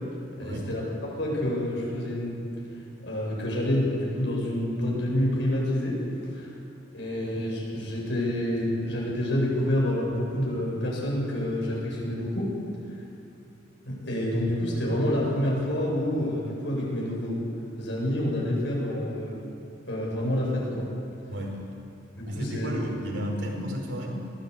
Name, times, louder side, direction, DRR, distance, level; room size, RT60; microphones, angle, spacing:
voice 1, 0.4-2.5 3.0-6.0 6.3-6.5 6.9-12.5 13.9-17.4 17.8-19.4 19.9-20.9 22.2-22.7, left 1 dB, 75° left, -3 dB, 8.0 m, -28 dB
voice 2, 21.3-21.7 22.3-24.3, equal, 80° right, 0 dB, 5.0 m, -33 dB
22.0 x 17.5 x 8.7 m, 2.6 s
head